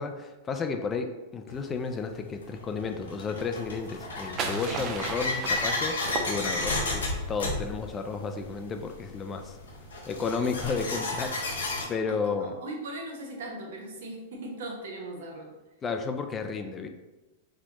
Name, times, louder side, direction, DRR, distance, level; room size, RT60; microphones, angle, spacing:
voice 1, 0.0-6.0 6.3-9.6 10.1-12.5 15.8-16.9, left 4 dB, 25° left, 6 dB, 0.3 m, -32 dB
sound 1, 1.5-1.6 2.4-11.8, left 2 dB, 90° left, 0.8 m, -32 dB
sound 2, 3.9-6.9, right 4 dB, 35° right, 0.5 m, -36 dB
voice 2, 12.1-15.5, right 2 dB, 70° right, 0 dB, 0.9 m, -39 dB
4.2 x 2.2 x 2.9 m, 1.1 s
hypercardioid pair, 120°, 0 cm